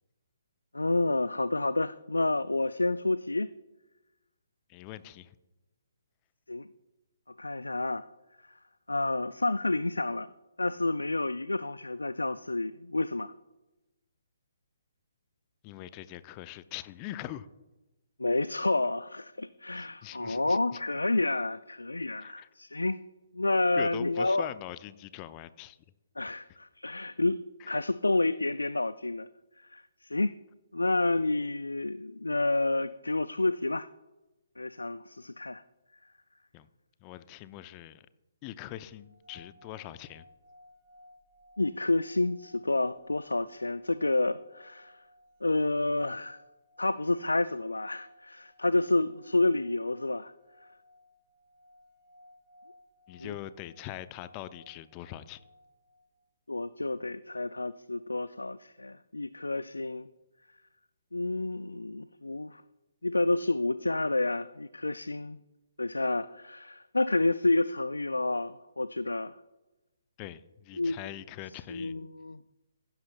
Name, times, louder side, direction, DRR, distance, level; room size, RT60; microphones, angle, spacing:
voice 1, 0.7-3.5 6.5-6.7 7.4-8.1 8.9-10.3 10.6-13.3 18.2-23.0 23.3-24.5 26.2-29.3 29.6-30.4 30.7-33.9 34.6-35.6 41.6-45.0 45.4-46.4 46.8-50.3 53.2-53.3 56.5-60.1 61.1-62.6 63.0-65.4 65.8-69.3 70.8-71.0 71.7-72.4, left 2 dB, 80° left, 0.3 m, -29 dB
voice 2, 4.7-5.3 15.6-17.5 19.8-20.8 22.2-22.5 23.8-25.8 27.6-27.7 36.5-36.7 37.0-38.1 38.4-40.2 53.1-55.4 70.2-72.0, left 13 dB, 25° left, 0.5 m, -42 dB
sound 1, 38.9-56.1, left 1 dB, 30° right, 2.5 m, -59 dB
15.5 x 11.5 x 2.3 m
figure-of-eight pair, 135°, 0 cm